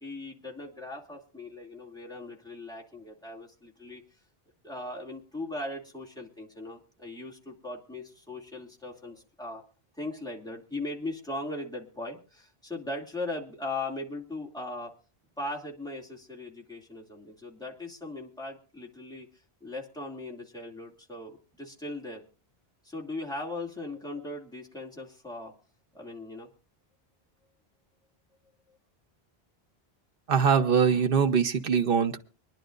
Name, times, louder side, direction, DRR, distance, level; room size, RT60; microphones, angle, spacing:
voice 1, 0.0-4.0 4.6-9.6 10.0-14.9 15.4-19.3 19.6-22.2 22.8-25.5 25.9-26.5, left 2 dB, 5° left, -3 dB, 2.5 m, -39 dB
voice 2, 30.3-32.2, right 6 dB, 60° right, 5 dB, 1.2 m, -23 dB
25.5 x 10.5 x 2.6 m, 0.35 s
omnidirectional pair, 1.0 m